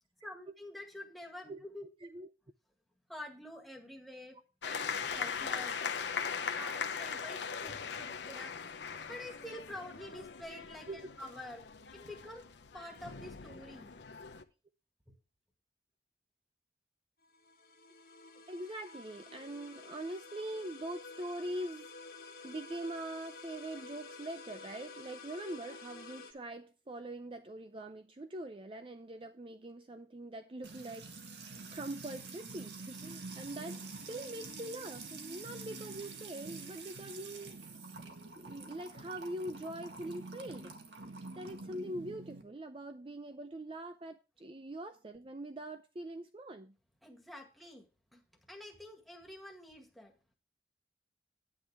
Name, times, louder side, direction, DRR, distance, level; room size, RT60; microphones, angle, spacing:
voice 1, 0.2-1.8 3.1-4.4 4.6-5.9 6.5-8.5 9.1-10.9 11.2-11.6 11.9-12.5 12.7-14.0 47.0-47.9 48.1-48.2 48.5-50.1, left 1 dB, ahead, 1.8 m, -48 dB
sound 1, 4.6-14.4, left 6 dB, 90° left, 0.8 m, -40 dB
sound 2, 17.2-26.3, left 3 dB, 55° left, 1.6 m, -51 dB
voice 2, 18.5-21.9 22.4-31.1 31.4-37.7 38.4-40.7 41.4-46.7, right 1 dB, 30° right, 0.5 m, -43 dB
Music / Water tap faucet / Trickle dribble, 30.6-42.4, right 3 dB, 85° right, 1.8 m, -47 dB
9.8 x 9.7 x 3.4 m
head